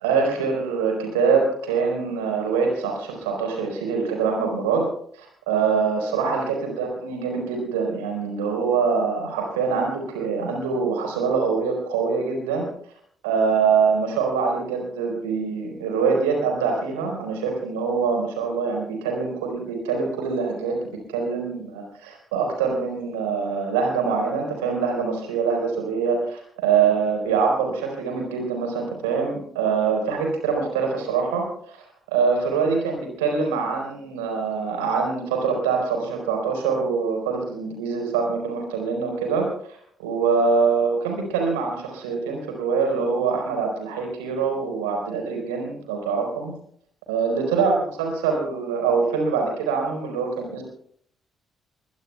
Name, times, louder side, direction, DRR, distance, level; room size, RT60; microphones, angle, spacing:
voice 1, 0.0-4.8 5.1-12.7 13.2-20.8 21.1-31.8 32.1-39.8 40.0-46.5 47.1-50.6, right 5 dB, 75° right, 2 dB, 4.4 m, -24 dB
22.0 x 21.5 x 2.3 m, 0.62 s
figure-of-eight pair, 40°, 0 cm